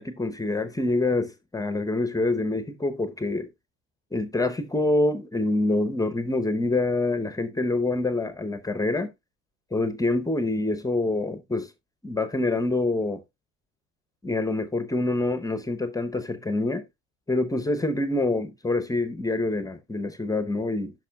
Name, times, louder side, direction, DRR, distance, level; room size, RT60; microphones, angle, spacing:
voice 1, 0.0-3.5 4.1-9.1 9.7-11.7 12.0-13.2 14.2-16.8 17.3-20.9, left 2 dB, 10° left, 0.8 m, -26 dB
10.0 x 6.0 x 2.3 m
supercardioid pair, 100°, 30 cm